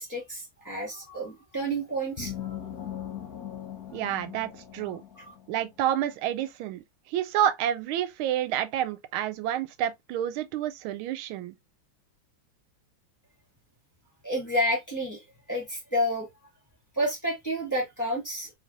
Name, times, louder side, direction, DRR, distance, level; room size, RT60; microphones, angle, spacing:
voice 1, 0.0-2.6 5.2-5.3 14.2-16.3 16.9-18.5, equal, 10° left, 1.3 m, -30 dB
sound 1, 2.2-5.7, left 10 dB, 70° left, 0.9 m, -39 dB
voice 2, 3.9-5.0 5.5-11.5, right 11 dB, 90° right, 1.4 m, -29 dB
3.5 x 3.2 x 2.4 m
omnidirectional pair, 2.2 m